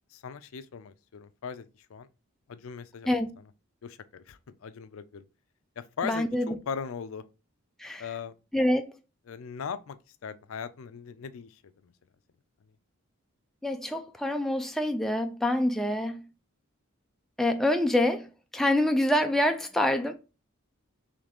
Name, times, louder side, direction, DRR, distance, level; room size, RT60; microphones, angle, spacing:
voice 1, 0.1-2.1 2.5-3.1 3.8-5.2 5.8-7.2 8.0-8.3 9.3-11.9, left 6 dB, 75° left, 0.4 m, -39 dB
voice 2, 6.0-6.5 7.8-8.0 8.5-8.9 13.6-16.2 17.4-18.3 18.5-20.1, left 1 dB, ahead, 0.3 m, -26 dB
3.8 x 3.2 x 3.4 m
head